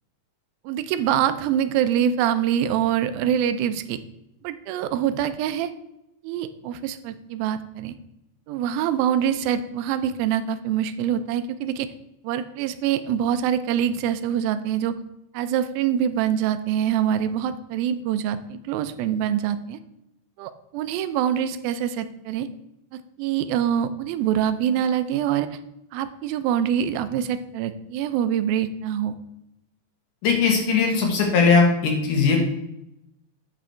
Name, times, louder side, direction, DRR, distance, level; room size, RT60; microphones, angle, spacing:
voice 1, 0.7-4.0 4.4-5.7 6.2-7.9 8.5-11.9 12.2-14.9 15.3-19.8 20.4-22.5 22.9-25.5 25.9-29.2, right 9 dB, 85° right, 11 dB, 2.3 m, -25 dB
voice 2, 30.2-32.4, left 5 dB, 65° left, 2 dB, 2.7 m, -19 dB
8.2 x 6.2 x 4.4 m, 0.86 s
omnidirectional pair, 4.2 m